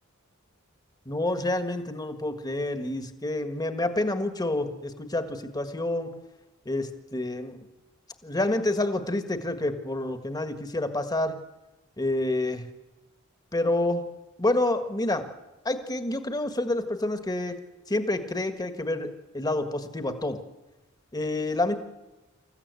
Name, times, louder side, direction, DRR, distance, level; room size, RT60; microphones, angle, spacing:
voice 1, 1.0-6.1 6.6-7.7 8.2-11.3 12.0-12.6 13.5-14.0 14.4-15.2 15.6-17.6 17.9-19.1 19.3-20.4 21.1-21.7, left 2 dB, 20° left, 8 dB, 1.6 m, -28 dB
26.5 x 14.5 x 8.3 m, 1.1 s
head